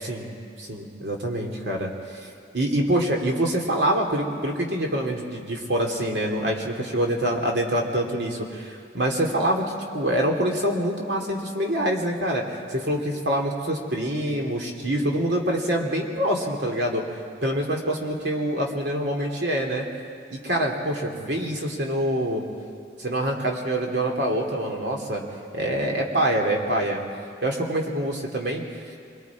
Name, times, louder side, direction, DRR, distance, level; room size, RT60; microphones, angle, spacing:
voice 1, 0.7-1.9 2.5-17.0 17.4-19.8 20.3-22.4 23.0-25.2 25.5-27.0 27.4-28.6, right 1 dB, 70° right, 0 dB, 2.8 m, -25 dB
26.5 x 22.5 x 4.8 m, 2.3 s
head